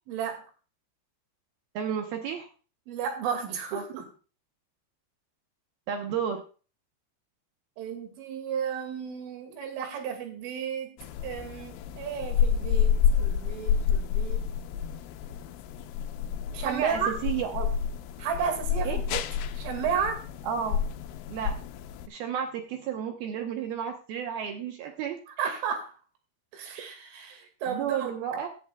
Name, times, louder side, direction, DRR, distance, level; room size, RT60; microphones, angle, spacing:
voice 1, 0.1-0.4 2.9-4.1 7.8-10.9 11.2-14.5 16.5-17.1 18.2-19.2 19.6-20.2 25.3-25.9 26.5-28.1, right 7 dB, 90° right, 4 dB, 4.7 m, -33 dB
voice 2, 1.8-2.5 3.7-3.8 5.9-6.4 16.6-17.7 18.8-19.0 20.4-20.8 21.3-21.5 22.1-25.6 27.7-28.5, right 8 dB, 75° right, 4 dB, 2.3 m, -32 dB
sound 1, 11.0-22.1, left 8 dB, 90° left, 3.3 m, -29 dB
16.5 x 11.0 x 2.3 m, 0.37 s
omnidirectional pair, 5.5 m